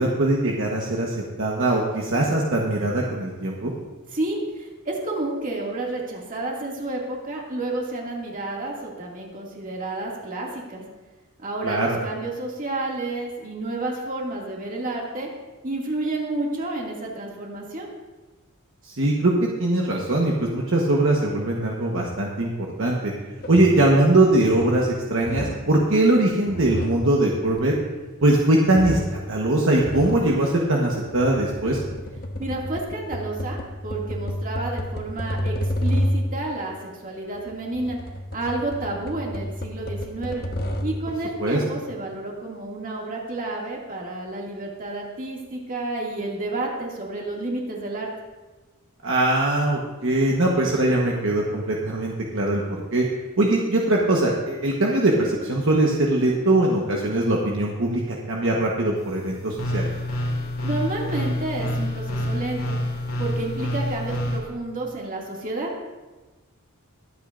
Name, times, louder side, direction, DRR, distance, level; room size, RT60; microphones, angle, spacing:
voice 1, 0.0-3.7 11.6-12.0 18.8-23.1 23.5-27.7 28.2-31.8 41.4-41.6 49.0-53.0 53.4-59.9, right 1 dB, 65° right, -2 dB, 1.2 m, -21 dB
voice 2, 4.1-10.8 11.4-15.3 15.6-17.9 32.4-36.7 37.0-38.0 38.3-40.4 40.8-48.1 60.6-62.8 63.2-65.7, right 2 dB, 40° right, -2 dB, 2.3 m, -30 dB
sound 1, 23.4-23.8 24.3-24.8 25.2-25.8 26.3-28.3 28.7-29.3 29.8-30.3 30.9-36.4 37.3-41.1, equal, 45° left, 1.2 m, -30 dB
sound 2, 59.0-64.4, left 1 dB, 80° left, 2.5 m, -28 dB
22.5 x 8.7 x 2.6 m, 1.2 s
head